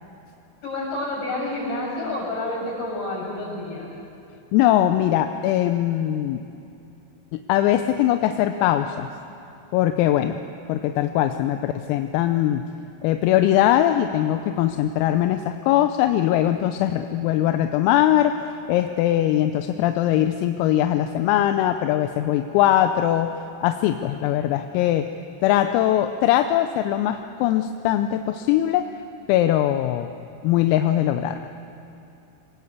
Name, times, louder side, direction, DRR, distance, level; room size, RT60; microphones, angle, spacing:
voice 1, 0.6-3.9, left 2 dB, 45° left, -3 dB, 8.4 m, -29 dB
voice 2, 4.5-6.4 7.3-9.1 9.7-10.4 10.7-12.6 13.0-18.3 18.7-23.3 23.6-25.1 25.4-28.9 29.3-30.1 30.4-31.4, left 12 dB, 85° left, 7 dB, 3.4 m, -21 dB
24.0 x 20.0 x 8.2 m, 2.7 s
omnidirectional pair, 6.0 m